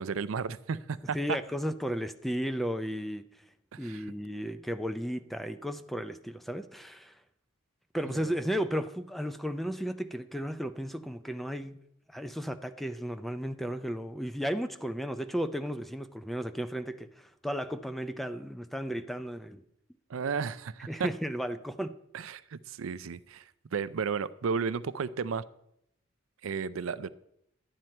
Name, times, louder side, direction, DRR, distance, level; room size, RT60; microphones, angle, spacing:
voice 1, 0.0-1.2 3.7-4.0 8.1-8.3 20.1-21.1 22.1-25.4 26.4-27.1, right 5 dB, 80° right, 16 dB, 0.5 m, -33 dB
voice 2, 1.1-3.4 3.8-7.2 7.9-11.8 12.1-19.6 20.9-21.9, equal, ahead, 9 dB, 0.4 m, -34 dB
12.0 x 9.4 x 4.4 m, 0.77 s
head